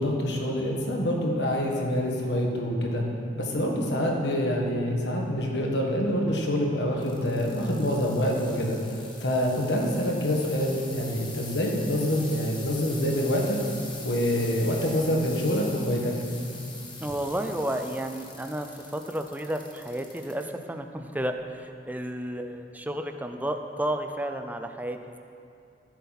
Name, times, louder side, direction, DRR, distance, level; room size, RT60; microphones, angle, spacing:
voice 1, 0.0-3.0 3.3-8.8 9.2-13.6 14.0-16.1, equal, 70° left, 0 dB, 1.6 m, -26 dB
sound 1, 7.0-20.4 21.0-21.4 22.1-22.2, left 3 dB, 25° left, 1.5 m, -43 dB
voice 2, 17.0-25.2, right 1 dB, 10° right, 6 dB, 0.5 m, -32 dB
14.5 x 8.2 x 4.1 m, 2.6 s
head